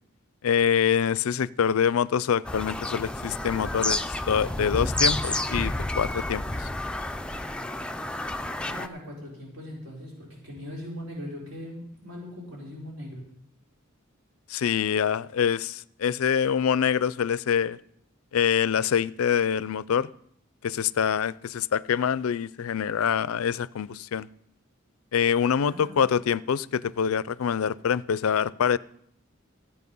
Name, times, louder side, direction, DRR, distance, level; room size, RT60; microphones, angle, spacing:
voice 1, 0.4-6.7 14.5-17.8 18.3-20.1 20.6-24.3 25.1-28.8, left 7 dB, 85° left, 0.4 m, -25 dB
Bird vocalization bird call bird song, 2.4-8.9, left 1 dB, 5° left, 0.4 m, -30 dB
voice 2, 8.6-13.2 25.6-26.0, equal, 70° right, 4.3 m, -40 dB
15.0 x 8.7 x 5.4 m
head